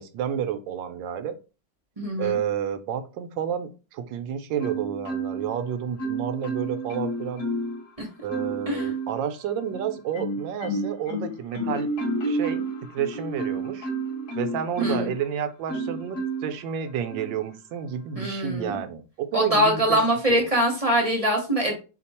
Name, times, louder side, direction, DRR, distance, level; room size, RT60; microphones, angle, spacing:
voice 1, 0.0-1.3 2.2-7.4 8.2-11.9 12.2-12.6 12.9-13.9 14.3-20.0 20.3-20.5, right 8 dB, 75° right, 9 dB, 1.3 m, -30 dB
voice 2, 2.0-2.4 8.0-8.1 8.7-8.9 14.8-15.1 18.1-18.8 19.3-21.7, equal, 30° right, 1 dB, 0.7 m, -23 dB
Marimba xylophone, 4.6-5.6 6.0-7.8 8.3-9.2 9.7-15.2 15.7-16.6 17.1-17.4, right 1 dB, 50° left, 2.9 m, -30 dB
5.2 x 2.3 x 4.2 m, 0.32 s
omnidirectional pair, 2.1 m